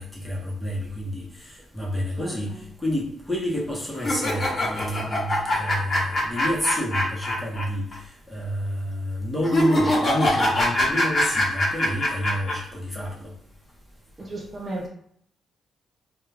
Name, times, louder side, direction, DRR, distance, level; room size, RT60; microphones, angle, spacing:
voice 1, 0.0-2.5 2.8-13.3, equal, ahead, -3 dB, 0.9 m, -29 dB
sound 1, 4.0-7.6 7.9-8.0 9.4-12.5, left 1 dB, 40° left, 0.9 m, -23 dB
voice 2, 14.2-14.9, right 2 dB, 40° right, 0 dB, 0.5 m, -33 dB
2.3 x 2.2 x 3.3 m, 0.66 s
cardioid pair, 85°, 0 cm